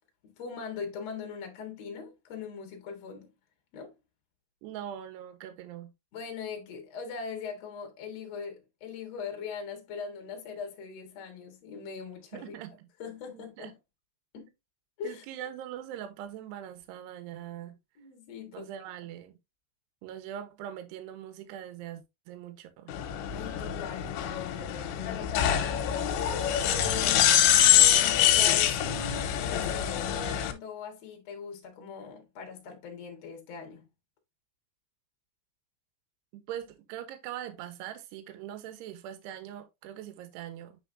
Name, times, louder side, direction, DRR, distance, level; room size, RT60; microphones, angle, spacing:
voice 1, 0.2-3.3 3.7-3.9 6.1-12.6 13.0-13.8 14.3-14.5 15.0-15.2 18.0-18.7 23.3-33.9, left 6 dB, 55° left, 2.0 m, -41 dB
voice 2, 4.6-5.9 12.0-12.1 12.3-12.7 13.3-13.7 15.0-17.8 18.5-19.4 20.0-23.0 26.8-27.4 36.3-40.8, right 11 dB, 75° right, 3.0 m, -42 dB
sound 1, 22.9-30.5, left 11 dB, 85° left, 3.2 m, -25 dB
8.3 x 5.5 x 2.7 m
omnidirectional pair, 5.2 m